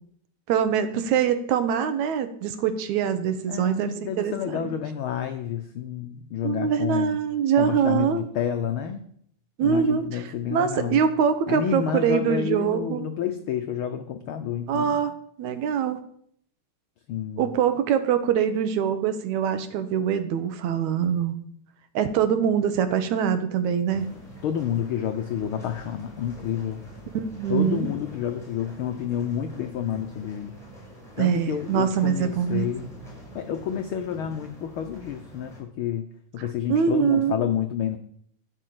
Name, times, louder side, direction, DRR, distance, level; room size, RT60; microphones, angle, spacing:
voice 1, 0.5-4.7 6.4-8.2 9.6-13.1 14.7-16.0 17.4-21.4 21.9-24.2 27.1-27.9 31.2-32.8 36.7-37.4, right 8 dB, 80° right, 10 dB, 2.3 m, -24 dB
voice 2, 3.5-7.2 7.6-9.0 9.6-11.0 11.5-15.0 17.1-17.5 24.4-26.8 27.5-30.5 31.2-33.0 33.3-36.1 36.3-38.0, left 9 dB, 90° left, 6 dB, 1.1 m, -29 dB
sound 1, 23.9-35.6, equal, ahead, 4.8 m, -45 dB
12.5 x 5.5 x 7.6 m, 0.67 s
omnidirectional pair, 3.3 m